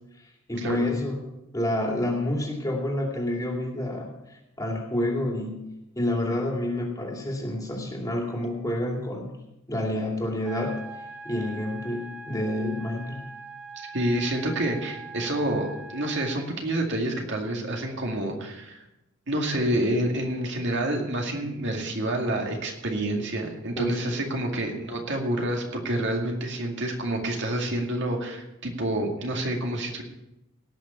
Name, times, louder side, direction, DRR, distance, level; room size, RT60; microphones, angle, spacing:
voice 1, 0.5-1.2 1.5-5.6 5.9-9.3 9.7-13.2 23.8-24.2, left 1 dB, 15° left, 0 dB, 2.5 m, -29 dB
sound 1, 10.5-16.4, right 3 dB, 5° right, 1.7 m, -42 dB
voice 2, 13.8-18.8 19.3-30.0, right 1 dB, 55° right, 1 dB, 2.2 m, -28 dB
18.0 x 6.3 x 7.0 m, 0.92 s
head